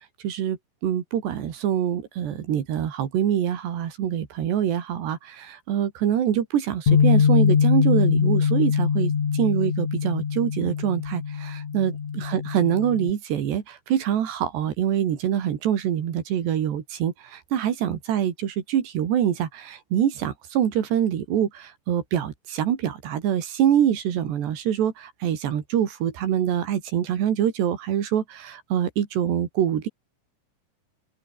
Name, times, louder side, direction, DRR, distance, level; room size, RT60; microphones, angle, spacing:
voice 1, 0.2-0.6 0.8-29.9, right 10 dB, 80° right, 4.6 m, -25 dB
Bass guitar, 6.9-13.1, left 6 dB, 50° left, 4.2 m, -22 dB
omnidirectional pair, 4.8 m